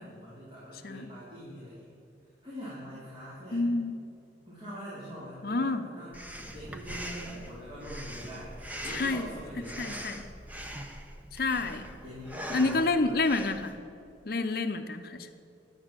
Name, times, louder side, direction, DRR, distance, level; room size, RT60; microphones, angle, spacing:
voice 1, 0.0-1.8 2.4-3.7 4.5-8.5 8.8-10.1 11.5-13.2, equal, 30° right, -10 dB, 3.6 m, -43 dB
voice 2, 3.5-3.9 5.4-5.9 8.9-9.2 9.8-10.2 11.3-11.8 12.5-13.7 14.3-15.3, left 3 dB, 55° left, 8 dB, 0.7 m, -28 dB
Breathing, 6.1-13.7, equal, 10° right, 0.8 m, -42 dB
12.0 x 8.9 x 7.4 m, 2.6 s
head